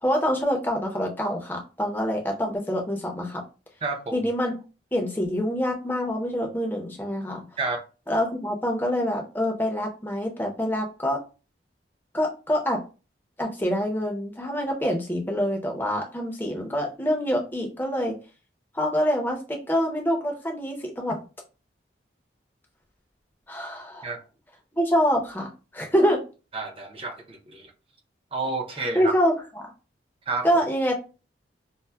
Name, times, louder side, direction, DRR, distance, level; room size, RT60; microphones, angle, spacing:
voice 1, 0.0-3.4 4.1-4.6 4.9-7.4 8.1-11.2 12.1-12.8 13.4-18.2 18.7-21.2 23.5-24.1 24.8-26.2 28.9-29.3 30.4-31.0, equal, 10° left, 0.6 m, -26 dB
voice 2, 3.8-4.3 7.6-7.8 24.0-24.2 26.5-27.7 28.3-29.1 30.3-30.5, right 3 dB, 30° right, 0.5 m, -30 dB
5.3 x 2.0 x 2.2 m
head